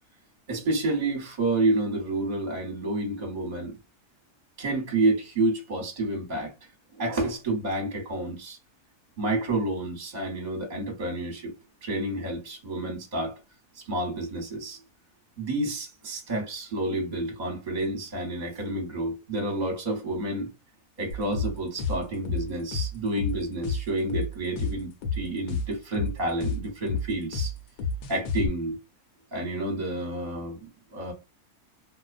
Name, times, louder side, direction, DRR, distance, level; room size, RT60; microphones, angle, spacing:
voice 1, 0.5-3.8 4.6-6.5 7.0-8.6 9.2-11.5 11.8-13.4 13.7-14.8 15.4-20.5 21.0-27.5 28.1-28.8 29.3-30.6 30.9-31.1, right 2 dB, 35° right, 0.9 m, -29 dB
sound 1, 21.1-28.5, left 3 dB, 80° left, 1.1 m, -30 dB
2.5 x 2.2 x 2.4 m
omnidirectional pair, 1.7 m